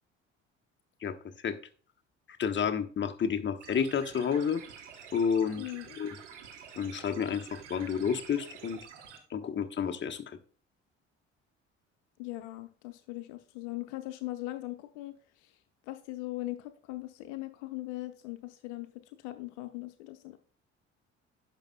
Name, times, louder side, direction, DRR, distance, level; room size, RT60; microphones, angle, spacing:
voice 1, 1.0-1.6 2.4-4.6 5.1-5.6 6.0-6.1 6.8-8.8 9.3-10.4, left 7 dB, 35° left, 1.1 m, -30 dB
sound 1, 3.6-9.2, right 7 dB, 85° right, 1.2 m, -49 dB
voice 2, 5.6-6.0 12.2-15.6 15.8-20.4, left 18 dB, 70° left, 0.7 m, -40 dB
10.5 x 6.2 x 2.3 m
hypercardioid pair, 55°, 35 cm